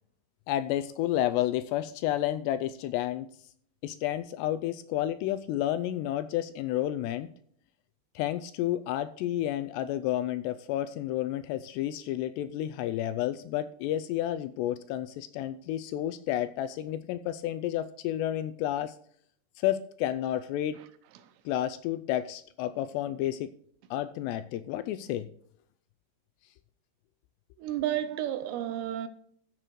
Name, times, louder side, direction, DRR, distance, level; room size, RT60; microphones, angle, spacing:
voice 1, 0.5-3.3 3.8-7.3 8.2-19.0 19.6-20.8 21.5-23.5 23.9-25.3, left 12 dB, 85° left, 2.5 m, -31 dB
voice 2, 27.6-29.1, right 12 dB, 80° right, 2.7 m, -31 dB
14.5 x 7.6 x 3.1 m
omnidirectional pair, 5.2 m